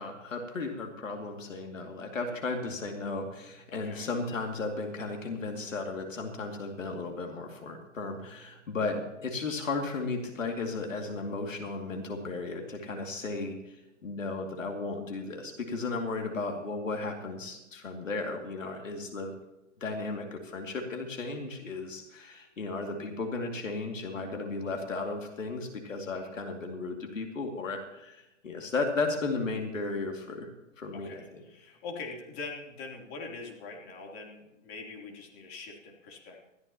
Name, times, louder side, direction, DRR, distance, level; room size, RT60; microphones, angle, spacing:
voice 1, 0.0-19.3 19.8-30.5 30.8-31.4, left 3 dB, 90° left, 3 dB, 2.5 m, -35 dB
voice 2, 3.7-4.1 12.8-13.0 26.0-26.3 30.9-36.4, left 3 dB, 35° left, 0 dB, 3.4 m, -43 dB
20.5 x 14.0 x 3.0 m, 0.96 s
hypercardioid pair, 130°, 38 cm